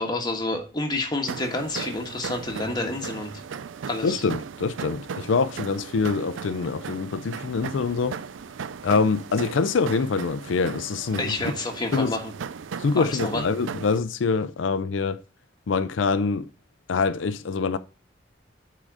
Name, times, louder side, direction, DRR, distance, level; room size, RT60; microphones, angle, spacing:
voice 1, 0.0-3.3 3.9-4.2 11.2-12.3 13.0-13.4, left 2 dB, 25° left, 1.4 m, -29 dB
sound 1, 1.3-14.0, right 6 dB, 90° right, 0.4 m, -37 dB
voice 2, 4.0-8.2 8.8-11.4 11.9-12.2 12.8-15.2 15.7-16.5 16.9-17.8, left 4 dB, 90° left, 0.5 m, -25 dB
8.5 x 3.9 x 4.9 m
head